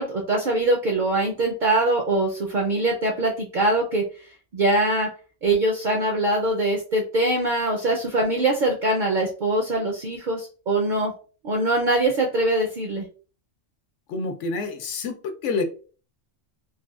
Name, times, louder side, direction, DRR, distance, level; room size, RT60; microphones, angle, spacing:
voice 1, 0.0-5.1 5.4-11.1 11.4-13.0, right 2 dB, 60° right, 1 dB, 0.5 m, -23 dB
voice 2, 14.1-15.6, left 4 dB, 75° left, 6 dB, 0.9 m, -28 dB
3.3 x 2.2 x 2.3 m, 0.38 s
omnidirectional pair, 1.3 m